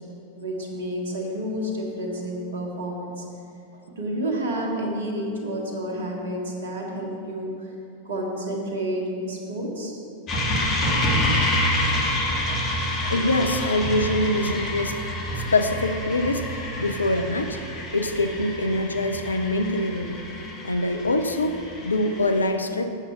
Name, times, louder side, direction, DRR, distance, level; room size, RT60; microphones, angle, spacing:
voice 1, 0.4-3.3 4.0-7.7 8.0-10.0 10.3-10.4 10.9-11.0 11.4-11.5 11.9-12.0 12.5-12.6 13.0-13.2, right 1 dB, 60° right, 0 dB, 1.5 m, -30 dB
sound 1, 10.3-22.5, left 1 dB, 30° left, 1.8 m, -28 dB
voice 2, 13.1-15.0 15.4-17.6 17.9-20.2 20.6-21.6 21.8-23.0, left 2 dB, 80° left, 7 dB, 0.5 m, -24 dB
8.1 x 7.0 x 6.0 m, 2.7 s
figure-of-eight pair, 90°, 0 cm